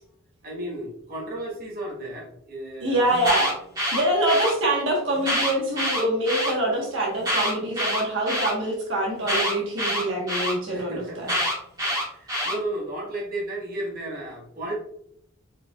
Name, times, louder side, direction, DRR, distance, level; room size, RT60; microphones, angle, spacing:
voice 1, 0.4-3.1 10.7-11.4 11.9-14.7, right 1 dB, 45° right, -3 dB, 1.4 m, -34 dB
voice 2, 2.8-3.5 3.9-11.3, right 1 dB, 65° right, -2 dB, 1.3 m, -25 dB
Alarm, 3.1-4.5 5.2-6.5 7.2-8.5 9.3-10.5 11.3-12.5, equal, 20° right, 1.8 m, -26 dB
4.6 x 4.5 x 2.3 m, 0.71 s
head